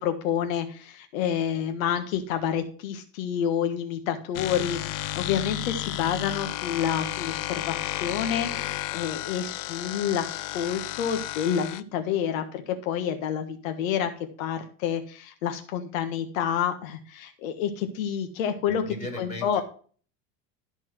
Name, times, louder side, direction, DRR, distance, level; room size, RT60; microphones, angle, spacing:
voice 1, 0.0-14.1 14.4-18.8 19.2-19.6, left 8 dB, 85° left, 6 dB, 1.5 m, -29 dB
sound 1, 4.3-11.8, left 15 dB, 55° left, 0.6 m, -32 dB
voice 2, 18.7-19.6, left 1 dB, 15° left, 2 dB, 4.0 m, -37 dB
13.0 x 4.5 x 6.0 m, 0.42 s
supercardioid pair, 140°, 39 cm